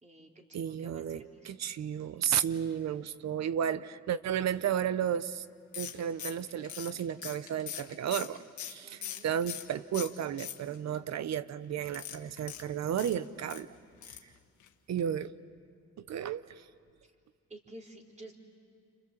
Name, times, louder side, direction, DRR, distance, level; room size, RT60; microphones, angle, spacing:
voice 1, 0.0-1.5 8.8-9.3 17.5-18.3, right 1 dB, 25° right, 1 dB, 3.8 m, -51 dB
voice 2, 0.5-5.4 5.8-13.7 14.1-14.2 14.9-15.3 16.1-16.6, right 9 dB, 60° right, 15 dB, 0.8 m, -33 dB
sound 1, 5.7-9.7 9.9-11.0 11.9-13.6 14.0-14.3 14.6-14.7 15.0-15.1, left 10 dB, 75° left, 1.7 m, -42 dB
30.0 x 26.5 x 7.5 m, 2.2 s
cardioid pair, 90°, 30 cm